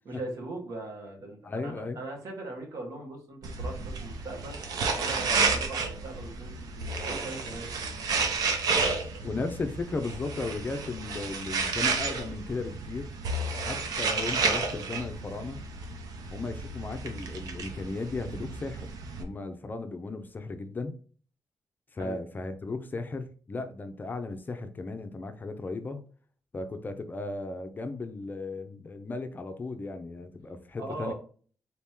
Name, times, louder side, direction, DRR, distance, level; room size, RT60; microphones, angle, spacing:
voice 1, 0.1-4.6 4.9-8.3 22.0-22.2 30.8-31.1, right 2 dB, 70° right, 0 dB, 1.8 m, -40 dB
voice 2, 1.4-2.0 9.2-13.1 13.6-15.6 16.3-18.9 19.2-21.0 21.9-26.0 26.5-31.1, left 3 dB, 30° left, 7 dB, 0.6 m, -36 dB
sound 1, 3.4-19.2, right 4 dB, 90° right, 0.8 m, -31 dB
4.1 x 2.9 x 3.6 m, 0.42 s
cardioid pair, 115°, 6 cm